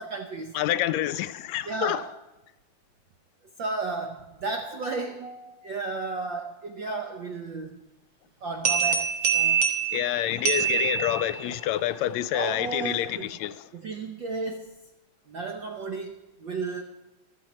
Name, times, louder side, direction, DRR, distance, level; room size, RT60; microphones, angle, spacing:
voice 1, 0.0-0.6 1.6-2.1 3.6-7.8 8.4-9.6 12.3-13.3 13.7-14.8 15.3-16.8, right 3 dB, 80° right, 1.0 m, -33 dB
voice 2, 0.5-2.0 9.9-13.7, left 13 dB, 80° left, 1.7 m, -28 dB
sound 1, 8.7-11.6, right 7 dB, 45° right, 1.9 m, -25 dB
14.0 x 13.0 x 4.3 m
omnidirectional pair, 3.4 m